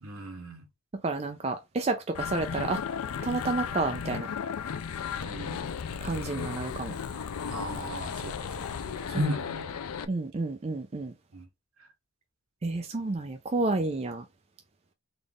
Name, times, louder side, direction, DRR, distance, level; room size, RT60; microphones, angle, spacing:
voice 1, 0.0-0.7 5.1-5.7 7.5-8.8 9.1-9.7 11.3-11.5, equal, 70° right, 1.1 m, -35 dB
voice 2, 1.0-2.8 3.2-4.3 6.0-7.0 9.1-9.3 10.1-11.1 12.6-14.2, right 3 dB, 30° right, 0.4 m, -30 dB
sound 1, 2.1-10.0, left 7 dB, 85° left, 0.4 m, -35 dB
4.0 x 2.4 x 3.5 m
head